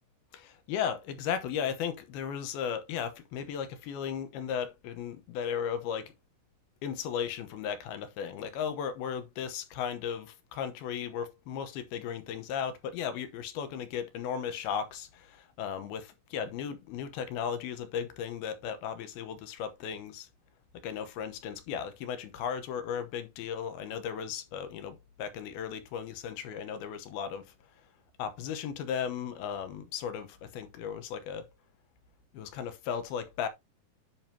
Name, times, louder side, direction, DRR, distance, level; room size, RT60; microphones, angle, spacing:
voice 1, 0.3-6.1 6.8-20.3 20.8-27.5 28.2-31.5 32.3-33.5, left 8 dB, 85° left, 2.9 m, -36 dB
10.5 x 5.3 x 2.8 m
omnidirectional pair, 4.4 m